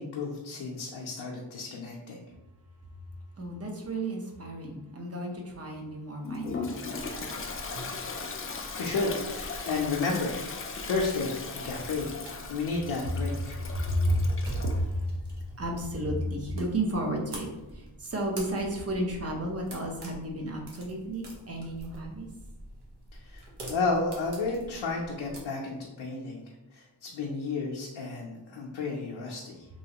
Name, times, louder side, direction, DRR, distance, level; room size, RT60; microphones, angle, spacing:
voice 1, 0.0-2.2 8.8-10.4 10.8-11.4 11.6-12.1 12.5-13.6 23.1-26.4 26.7-29.7, left 3 dB, 75° left, -2 dB, 0.6 m, -32 dB
voice 2, 3.4-7.3 13.4-15.1 15.6-17.5 17.7-22.3, right 1 dB, 35° right, 1 dB, 0.6 m, -32 dB
Toilet flush, 6.2-14.8, left 4 dB, 30° left, 0.3 m, -38 dB
sound 1, 6.9-25.4, right 1 dB, 60° right, 0.9 m, -46 dB
3.0 x 2.8 x 2.8 m, 1.0 s
wide cardioid pair, 100°, 46 cm